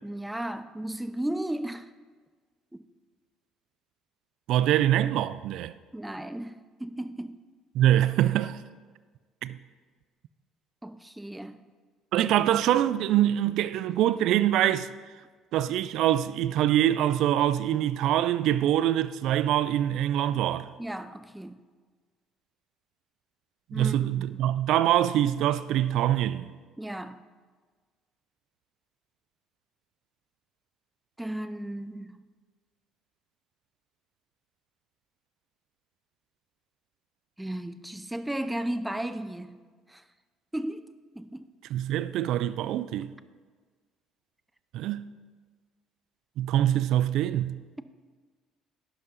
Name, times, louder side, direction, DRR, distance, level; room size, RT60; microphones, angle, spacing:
voice 1, 0.0-1.9 2.7-2.9 5.9-7.4 10.8-11.6 20.8-21.6 23.7-24.5 26.8-27.2 31.2-32.2 37.4-39.6 39.9-40.0 40.5-40.9 41.1-41.5, right 1 dB, 5° right, 0.5 m, -35 dB
voice 2, 4.5-5.7 7.7-8.6 9.4-9.6 12.1-14.9 15.5-20.7 23.7-26.5 41.7-43.1 44.7-45.1 46.4-47.6, right 12 dB, 70° right, 0.3 m, -24 dB
11.0 x 5.4 x 3.9 m
supercardioid pair, 75°, 0 cm